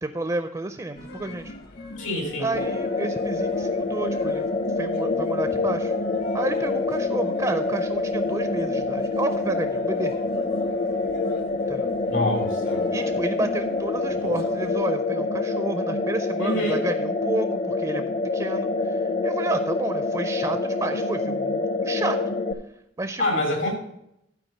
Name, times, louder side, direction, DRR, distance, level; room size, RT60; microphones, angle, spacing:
voice 1, 0.0-1.5 2.4-4.5 4.8-5.9 6.3-10.1 11.7-11.9 12.9-22.4 23.0-23.5, right 2 dB, 20° right, 9 dB, 0.4 m, -31 dB
sound 1, 0.9-14.7, left 1 dB, 55° left, 1.0 m, -42 dB
voice 2, 2.0-2.5 12.1-12.9 16.4-16.9 23.2-23.8, left 1 dB, 85° left, 1 dB, 2.8 m, -26 dB
sound 2, 2.5-22.5, left 3 dB, 40° left, 0.6 m, -26 dB
12.0 x 4.6 x 5.5 m, 0.79 s
head